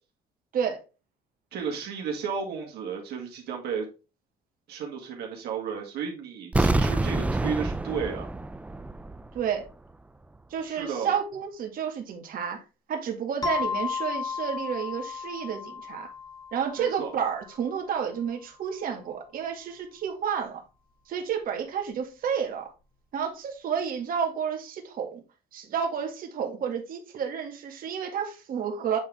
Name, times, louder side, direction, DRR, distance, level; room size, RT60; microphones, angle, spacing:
voice 1, 0.5-0.8 9.3-9.7 10.5-12.6 12.9-16.1 16.5-20.6 21.1-22.7 23.1-25.2 25.5-29.0, right 7 dB, 55° right, 2.0 m, -30 dB
voice 2, 1.5-3.9 4.7-8.3 10.6-11.1 16.8-17.1, right 6 dB, 70° right, 2.2 m, -33 dB
sound 1, 6.5-9.4 9.7-9.8, right 2 dB, 10° right, 0.4 m, -27 dB
sound 2, 13.4-17.8, left 6 dB, 20° left, 1.4 m, -34 dB
8.4 x 3.8 x 3.6 m
cardioid pair, 110°, 17 cm